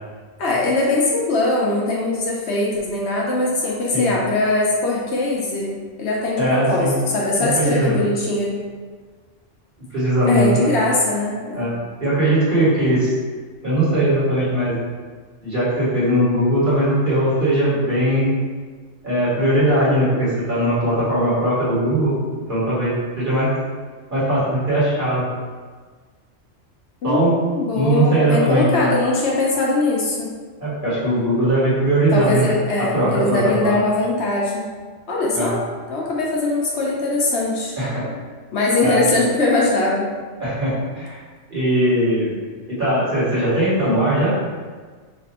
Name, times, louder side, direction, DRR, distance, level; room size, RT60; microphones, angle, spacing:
voice 1, 0.4-8.6 10.3-11.7 27.0-30.3 32.1-34.7 35.1-35.6 35.9-37.8 38.5-40.1, left 2 dB, 65° left, -3 dB, 0.9 m, -21 dB
voice 2, 6.4-6.9 7.4-8.0 9.9-10.7 11.5-11.7 12.0-13.1 13.6-14.8 15.4-18.3 19.0-22.1 22.5-23.5 24.1-25.2 27.0-27.4 27.7-28.9 30.6-32.5 32.9-33.8 35.3-35.5 37.8-38.1 38.8-39.0 40.4-41.2 41.5-42.3 42.7-44.3, right 1 dB, 40° right, -10 dB, 1.6 m, -19 dB
3.3 x 2.5 x 4.1 m, 1.5 s
omnidirectional pair, 1.3 m